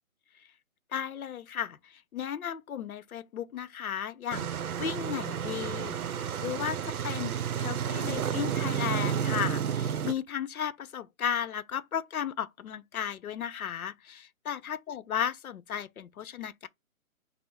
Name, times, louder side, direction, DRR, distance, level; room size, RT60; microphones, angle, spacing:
voice 1, 0.9-4.5 4.8-16.7, left 9 dB, 85° left, 0.7 m, -35 dB
sound 1, 4.3-10.1, right 8 dB, 90° right, 0.6 m, -31 dB
5.4 x 2.0 x 4.4 m
hypercardioid pair, 175°, 42 cm